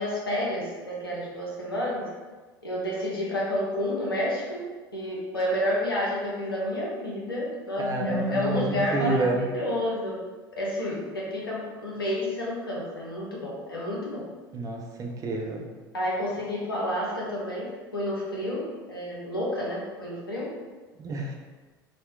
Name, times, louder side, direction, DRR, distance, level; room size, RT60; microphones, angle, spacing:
voice 1, 0.0-2.1 2.6-4.6 4.9-10.2 10.5-14.2 15.9-20.5, equal, 85° left, -4 dB, 0.8 m, -30 dB
voice 2, 7.8-9.4 14.5-15.6 21.0-21.3, right 2 dB, 30° right, 1 dB, 0.6 m, -29 dB
4.0 x 2.2 x 3.2 m, 1.3 s
figure-of-eight pair, 70°, 12 cm